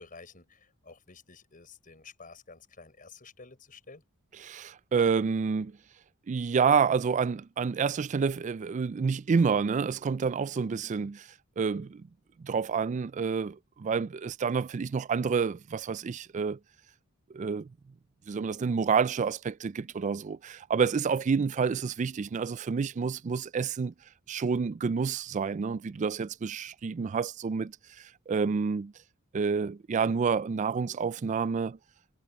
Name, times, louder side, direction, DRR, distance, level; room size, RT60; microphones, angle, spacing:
voice 1, 0.0-4.0, left 4 dB, 40° left, 5.6 m, -51 dB
voice 2, 4.4-5.8 6.3-11.3 11.6-12.1 12.4-16.6 17.3-17.7 18.3-23.9 24.3-28.9 29.3-31.8, right 5 dB, 35° right, 0.3 m, -29 dB
head